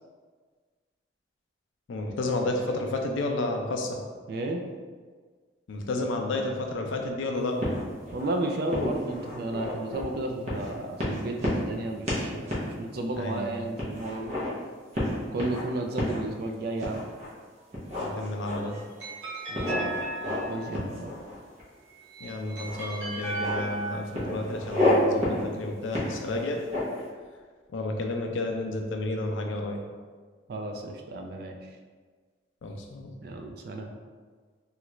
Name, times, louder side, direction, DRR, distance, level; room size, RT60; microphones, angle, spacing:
voice 1, 1.9-4.0 5.7-7.6 13.1-13.6 18.0-18.8 22.2-26.6 27.7-29.8 32.6-33.1, left 2 dB, 85° left, 3 dB, 0.4 m, -31 dB
voice 2, 4.3-4.6 8.1-14.3 15.3-17.0 19.5-21.1 30.5-31.7 33.2-33.9, right 2 dB, 55° right, 3 dB, 0.3 m, -33 dB
sound 1, 7.6-8.3 8.7-10.0 10.5-10.7 11.0-11.8 12.1-12.2 12.5-12.7 13.1-13.2 13.8-14.5 14.9-15.6 16.0-16.2 16.8-17.3 17.7-18.8 19.5-20.5 20.7-21.6 22.6-22.8 23.1-23.6 24.1-24.9 25.2-25.4 25.9-27.0, left 1 dB, 35° right, 0.8 m, -30 dB
sound 2, 18.5-21.0 21.9-24.3, right 2 dB, 80° right, 0.8 m, -36 dB
3.0 x 2.4 x 3.0 m, 1.5 s
head